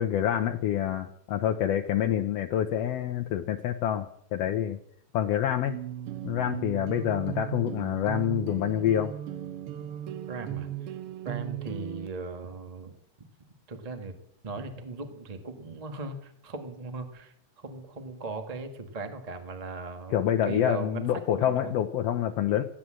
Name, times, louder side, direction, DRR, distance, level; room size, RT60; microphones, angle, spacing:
voice 1, 0.0-4.8 5.1-5.7 6.2-9.1 20.1-22.6, left 10 dB, 75° left, 5 dB, 1.6 m, -27 dB
sound 1, 5.7-12.1, right 11 dB, 85° right, 1.2 m, -37 dB
voice 2, 10.3-10.9 11.2-12.9 13.7-14.2 14.4-21.8, right 3 dB, 30° right, 6 dB, 0.7 m, -38 dB
16.0 x 10.0 x 7.6 m, 0.72 s
omnidirectional pair, 3.5 m